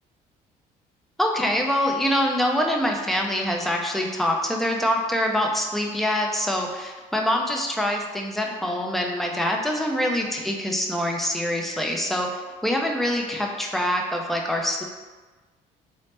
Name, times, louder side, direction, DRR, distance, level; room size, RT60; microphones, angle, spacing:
voice 1, 1.2-14.8, equal, ahead, 1 dB, 0.3 m, -25 dB
2.8 x 2.0 x 3.2 m, 1.3 s
cardioid pair, 110°, 17 cm